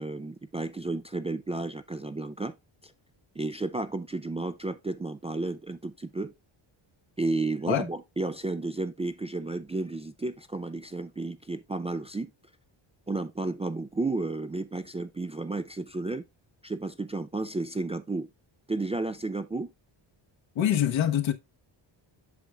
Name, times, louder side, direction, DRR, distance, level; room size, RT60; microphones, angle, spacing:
voice 1, 0.0-2.5 2.8-2.9 3.4-6.3 7.2-12.3 13.1-16.2 16.6-18.3 18.7-19.7, right 2 dB, 15° right, 0.3 m, -32 dB
voice 2, 20.5-21.3, left 10 dB, 75° left, 1.1 m, -24 dB
8.3 x 6.0 x 2.3 m
cardioid pair, 105°, 47 cm